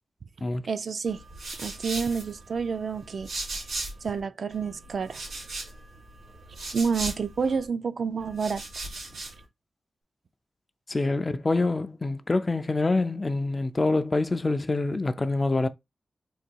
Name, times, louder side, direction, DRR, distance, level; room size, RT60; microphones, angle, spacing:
voice 1, 0.7-1.2 1.6-3.3 4.0-5.2 6.7-8.6, right 5 dB, 60° right, 0.4 m, -29 dB
sound 1, 1.1-4.2 4.5-7.7 8.2-9.4, right 2 dB, 90° right, 2.4 m, -38 dB
voice 2, 10.9-15.7, left 2 dB, 25° left, 0.3 m, -26 dB
3.9 x 2.7 x 4.5 m
wide cardioid pair, 175°, 0 cm